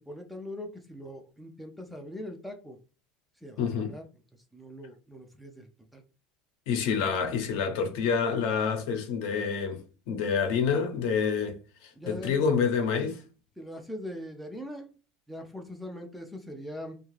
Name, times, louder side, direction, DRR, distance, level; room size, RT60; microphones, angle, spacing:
voice 1, 0.0-2.8 3.4-4.0 4.5-6.0 12.0-12.5 13.6-15.0 15.3-17.0, left 1 dB, ahead, 0.4 m, -41 dB
voice 2, 3.6-4.0 6.7-13.2, left 6 dB, 65° left, 0.7 m, -28 dB
2.6 x 2.4 x 3.1 m
cardioid pair, 155°, 0 cm